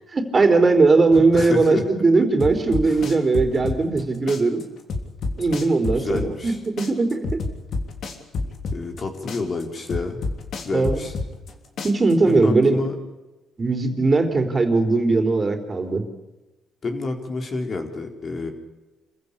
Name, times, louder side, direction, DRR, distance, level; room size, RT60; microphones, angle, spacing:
voice 1, 0.1-4.6 5.4-7.3 10.7-11.0 11.8-12.8 13.6-16.0, right 3 dB, 30° right, 5 dB, 3.9 m, -19 dB
voice 2, 1.1-1.8 2.8-3.0 5.9-6.6 8.7-10.2 10.6-11.1 12.3-13.0 16.8-18.5, left 3 dB, 45° left, 4 dB, 4.3 m, -29 dB
sound 1, 2.4-4.0 4.3-6.5 6.8-9.0 9.3-11.5 11.8-12.4, left 3 dB, 65° left, 3.3 m, -28 dB
27.5 x 15.0 x 8.7 m, 1.1 s
cardioid pair, 90°, 0 cm